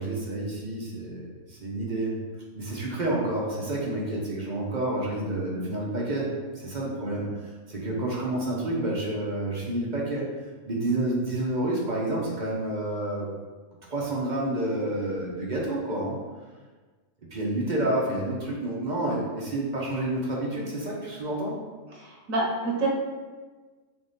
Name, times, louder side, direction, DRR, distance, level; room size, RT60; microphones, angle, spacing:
voice 1, 0.0-2.1 2.5-6.3 6.6-10.3 10.6-13.3 13.9-16.2 17.3-21.6, right 1 dB, 45° right, -4 dB, 0.7 m, -29 dB
voice 2, 22.0-22.9, right 2 dB, 85° right, -1 dB, 1.3 m, -27 dB
3.5 x 3.1 x 3.9 m, 1.3 s
omnidirectional pair, 1.4 m